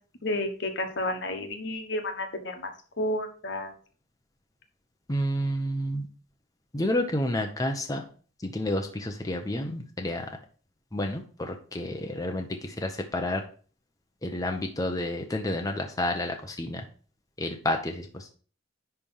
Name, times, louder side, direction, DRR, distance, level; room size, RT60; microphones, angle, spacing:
voice 1, 0.2-2.7 3.0-3.7, left 1 dB, 65° left, 5 dB, 1.4 m, -31 dB
voice 2, 5.1-6.1 6.7-8.0 8.4-10.3 10.9-13.4 14.2-16.8 17.4-18.3, left 1 dB, 20° left, 3 dB, 0.8 m, -30 dB
10.0 x 3.4 x 5.5 m, 0.41 s
head